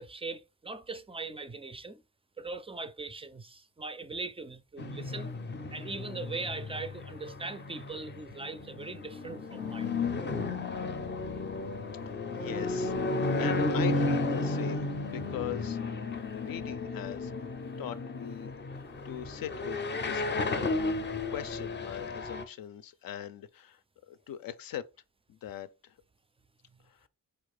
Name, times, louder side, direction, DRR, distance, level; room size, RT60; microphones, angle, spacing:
voice 1, 0.0-2.0 2.4-5.3 5.7-10.0, right 3 dB, 15° right, 0.3 m, -40 dB
sound 1, 4.8-22.4, left 3 dB, 30° left, 0.5 m, -33 dB
voice 2, 12.3-12.9 13.3-15.9 16.3-17.5 17.8-20.7 21.3-23.8 24.1-24.9 25.3-25.9 26.9-27.1, left 10 dB, 75° left, 0.6 m, -41 dB
4.4 x 2.5 x 4.7 m
wide cardioid pair, 155°, 35 cm